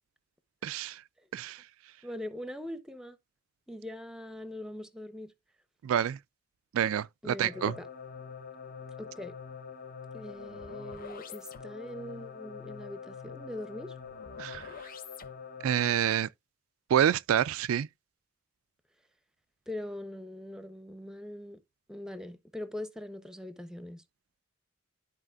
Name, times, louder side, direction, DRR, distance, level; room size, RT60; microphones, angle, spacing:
voice 1, 0.6-1.0 1.3-1.6 5.8-6.2 6.7-7.7 14.4-14.7 15.6-16.3 16.9-17.9, right 9 dB, 75° right, 0.3 m, -27 dB
voice 2, 2.0-3.2 3.7-5.3 7.2-7.9 9.0-9.3 10.1-14.0 19.7-21.6 21.9-24.0, left 1 dB, 5° right, 0.6 m, -42 dB
sound 1, 7.4-16.2, left 6 dB, 40° left, 0.7 m, -44 dB
12.5 x 4.2 x 2.3 m
head